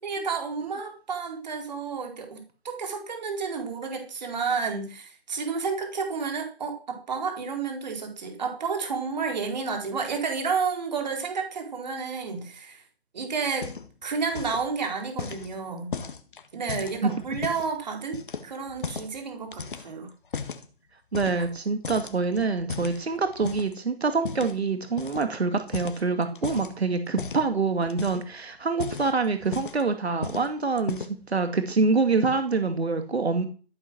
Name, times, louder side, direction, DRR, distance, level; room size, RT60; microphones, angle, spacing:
voice 1, 0.0-12.8 13.1-13.7 14.0-16.0 16.5-20.1, right 5 dB, 45° right, 4 dB, 4.3 m, -31 dB
Footsteps - Concrete, 13.4-14.0 14.3-14.7 15.2-17.7 18.1-19.2 19.5-20.7 21.1-21.6 21.8-23.7 24.2-24.6 25.0-25.3 25.6-26.7 27.2-27.5 27.9-28.3 28.7-29.9 30.2-30.5 30.8-31.3, left 5 dB, 55° left, 1.8 m, -36 dB
voice 2, 21.1-33.5, right 4 dB, 85° right, 7 dB, 2.5 m, -26 dB
14.5 x 8.3 x 6.3 m, 0.38 s
hypercardioid pair, 170°, 31 cm